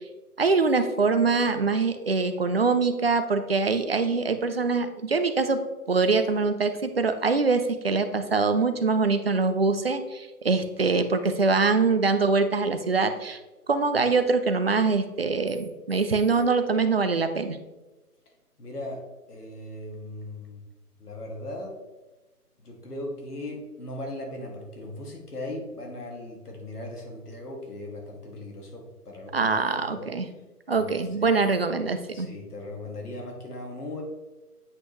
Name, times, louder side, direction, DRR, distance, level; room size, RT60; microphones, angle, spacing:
voice 1, 0.4-13.4 13.7-17.6 29.3-30.3 30.7-32.3, right 4 dB, 40° right, 9 dB, 0.5 m, -24 dB
voice 2, 18.6-19.0 19.3-20.6 21.0-21.7 22.6-29.5 29.9-30.1 30.7-31.4 32.1-34.0, left 1 dB, 70° left, 0 dB, 2.1 m, -38 dB
8.3 x 5.2 x 3.0 m, 1.1 s
figure-of-eight pair, 160°, 47 cm